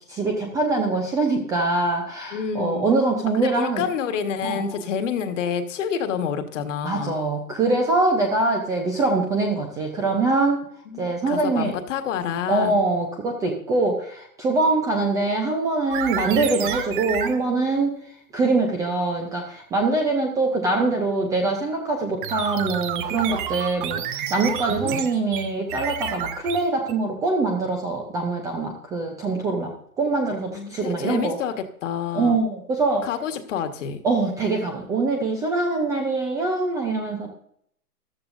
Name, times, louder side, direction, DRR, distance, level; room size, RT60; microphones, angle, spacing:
voice 1, 0.1-3.8 4.4-4.8 6.8-10.6 11.0-11.7 12.5-17.9 18.3-29.7 30.0-31.3 32.1-33.1 34.0-37.3, right 3 dB, 5° right, 2 dB, 0.5 m, -23 dB
voice 2, 2.3-2.9 3.3-7.1 10.9-12.7 30.5-31.6 31.8-32.4 33.0-34.0, left 7 dB, 50° left, 8 dB, 1.6 m, -28 dB
sound 1, 15.9-17.4 22.2-26.9, right 9 dB, 35° right, 0.9 m, -29 dB
14.0 x 12.5 x 2.6 m, 0.66 s
hypercardioid pair, 140°, 47 cm